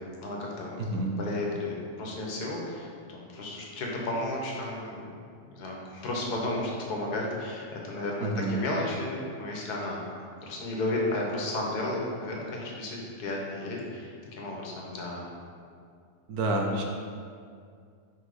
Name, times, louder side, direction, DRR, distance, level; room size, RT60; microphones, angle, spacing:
voice 1, 0.2-0.8 1.2-5.2 5.5-10.0 10.5-15.2, left 2 dB, 85° left, -2 dB, 1.5 m, -33 dB
voice 2, 0.8-1.1 8.2-8.5 16.3-16.8, right 2 dB, 75° right, 1 dB, 1.2 m, -28 dB
5.1 x 3.9 x 4.8 m, 2.2 s
omnidirectional pair, 1.6 m